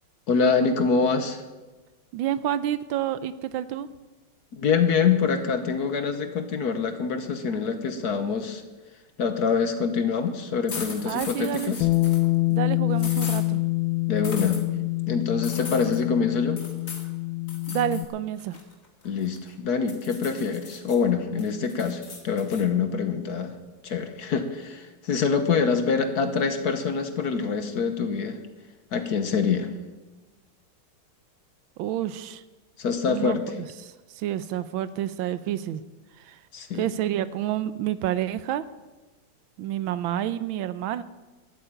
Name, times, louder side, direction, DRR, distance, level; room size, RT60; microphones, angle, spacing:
voice 1, 0.3-1.4 4.5-8.6 9.2-11.9 14.1-14.6 15.1-16.6 19.0-23.6 23.8-28.4 28.9-29.7 32.8-33.4 36.5-36.9, left 5 dB, 55° left, 8 dB, 1.4 m, -25 dB
voice 2, 2.1-3.9 11.1-11.8 12.5-13.6 17.7-18.6 31.8-32.4 33.1-35.8 36.2-36.4 36.7-38.7 39.6-41.0, right 11 dB, 80° right, 15 dB, 1.4 m, -29 dB
sound 1, 10.7-12.3 13.0-13.4 14.2-14.6 15.4-16.0 16.6-17.1 17.5-18.1 18.4-19.5 19.9-21.0 21.4-22.6, left 4 dB, 40° left, 2.1 m, -39 dB
Bass guitar, 11.8-18.1, left 21 dB, 80° left, 1.4 m, -26 dB
12.5 x 8.5 x 9.0 m, 1.2 s
omnidirectional pair, 2.3 m